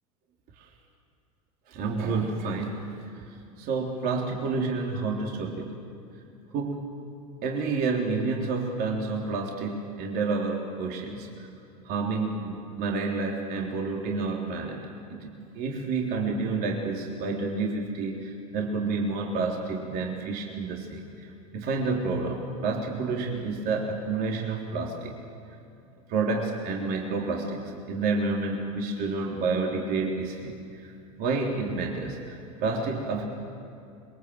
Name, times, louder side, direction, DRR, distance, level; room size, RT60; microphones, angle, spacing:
voice 1, 1.7-2.8 3.6-5.8 6.5-6.9 7.4-11.3 11.9-14.8 15.1-21.3 21.5-25.2 26.1-27.6 27.9-30.6 30.8-30.9 31.2-33.2, right 3 dB, 50° right, 0 dB, 3.5 m, -29 dB
26.0 x 23.0 x 7.9 m, 2.6 s
hypercardioid pair, 85°, 19 cm